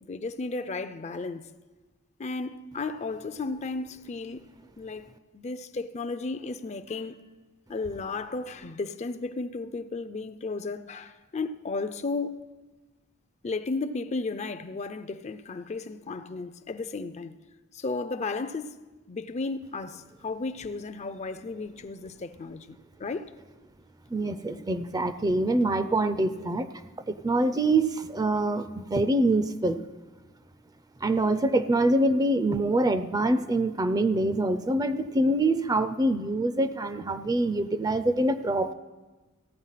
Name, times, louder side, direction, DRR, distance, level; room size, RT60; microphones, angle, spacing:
voice 1, 0.1-1.5 2.2-4.5 4.8-7.2 7.7-12.4 13.4-17.3 17.7-18.8 19.1-23.3, left 3 dB, 35° left, 0.5 m, -34 dB
voice 2, 24.1-26.7 27.1-29.8 31.0-38.7, right 2 dB, 20° right, 0.5 m, -25 dB
15.0 x 9.0 x 5.7 m
head